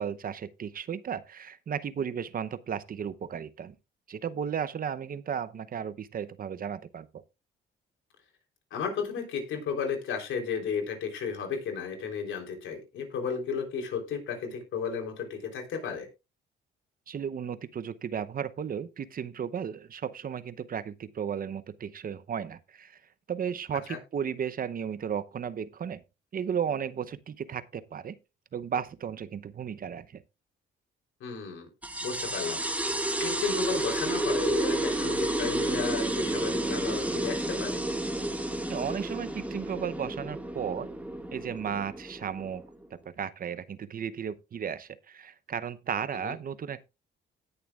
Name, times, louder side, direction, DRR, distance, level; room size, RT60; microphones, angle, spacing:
voice 1, 0.0-3.7 4.1-7.2 17.1-23.0 23.3-26.0 26.3-28.2 28.5-30.2 38.7-40.9 41.3-42.6 43.2-46.8, right 8 dB, 45° right, 0.8 m, -34 dB
voice 2, 8.7-16.1 23.9-24.0 31.2-31.7 32.0-32.6 33.2-37.8 46.2-46.3, left 6 dB, 80° left, 3.7 m, -33 dB
sound 1, 31.8-42.9, right 1 dB, 5° right, 1.8 m, -31 dB
18.0 x 6.8 x 2.4 m
cardioid pair, 90°, 20 cm